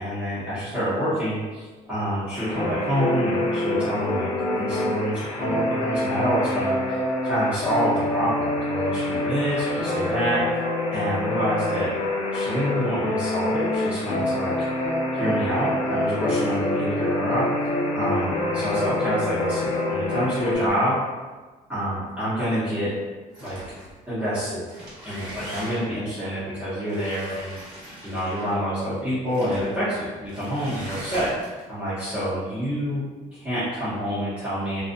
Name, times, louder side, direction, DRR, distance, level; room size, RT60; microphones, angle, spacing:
voice 1, 0.0-4.3 4.6-10.6 10.9-11.9 12.3-14.5 15.1-17.7 17.9-21.2 21.7-22.9 23.4-23.6 24.1-24.6 25.0-27.5 28.0-33.0 33.3-34.8, equal, 10° right, -14 dB, 0.7 m, -27 dB
Alarm, 2.3-20.5, left 2 dB, 40° left, 0.4 m, -34 dB
sound 1, 2.5-4.9 5.4-20.7, left 1 dB, 80° left, 0.6 m, -26 dB
sound 2, 23.3-24.0 24.6-26.0 26.9-28.6 29.3-29.7 30.3-31.6, equal, 35° right, 1.1 m, -40 dB
2.6 x 2.3 x 2.5 m, 1.3 s
cardioid pair, 180°, 14 cm